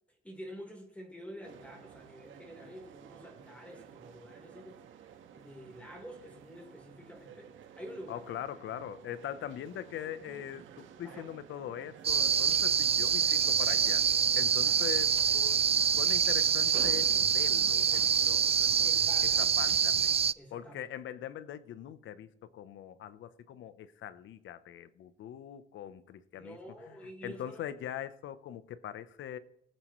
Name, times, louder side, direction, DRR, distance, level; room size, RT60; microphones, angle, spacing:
voice 1, 0.2-4.8 5.3-8.2 11.0-11.3 14.6-14.8 18.8-19.6 20.3-20.9 26.3-27.7, equal, 5° left, 4.0 m, -48 dB
sound 1, 1.4-18.9, right 9 dB, 80° right, 1.5 m, -53 dB
voice 2, 8.1-14.1 14.4-15.7 15.9-18.9 19.4-20.1 20.5-26.6 26.9-27.0 27.2-29.4, left 10 dB, 75° left, 0.9 m, -42 dB
sound 2, 12.0-20.3, right 7 dB, 30° right, 0.3 m, -26 dB
22.5 x 9.3 x 3.2 m
cardioid pair, 90°, 20 cm